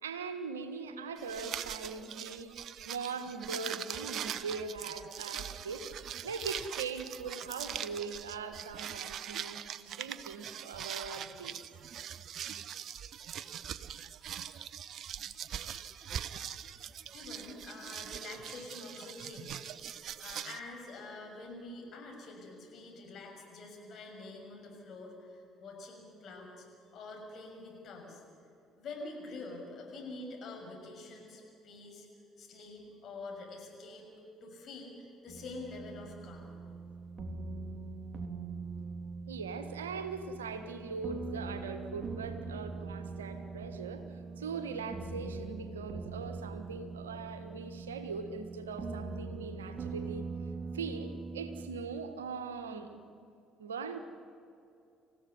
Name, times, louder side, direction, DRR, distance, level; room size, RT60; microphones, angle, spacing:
voice 1, 0.0-2.5 2.8-5.9 6.2-11.6 16.4-16.5 39.3-50.3 50.7-53.0 53.6-54.0, right 5 dB, 85° right, 8 dB, 1.4 m, -41 dB
sound 1, 1.2-20.6, right 9 dB, 55° right, 0.8 m, -42 dB
voice 2, 16.8-19.6 19.9-26.7 26.9-28.2 28.7-32.1 32.4-34.1 34.4-36.5, left 3 dB, 55° left, 1 dB, 6.8 m, -46 dB
sound 2, 35.3-51.7, right 4 dB, 35° right, 3.2 m, -42 dB
27.5 x 15.5 x 9.7 m, 2.7 s
hypercardioid pair, 55°, 0 cm